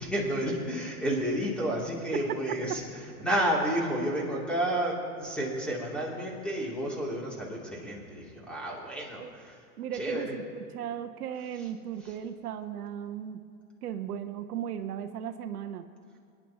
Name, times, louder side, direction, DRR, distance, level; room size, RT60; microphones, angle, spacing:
voice 1, 0.0-9.6 9.9-10.3, right 1 dB, ahead, -4 dB, 2.7 m, -31 dB
voice 2, 9.8-10.4 10.7-13.4 13.8-15.9, right 9 dB, 80° right, 8 dB, 0.8 m, -36 dB
24.0 x 10.0 x 2.9 m, 2.4 s
hypercardioid pair, 125°, 45 cm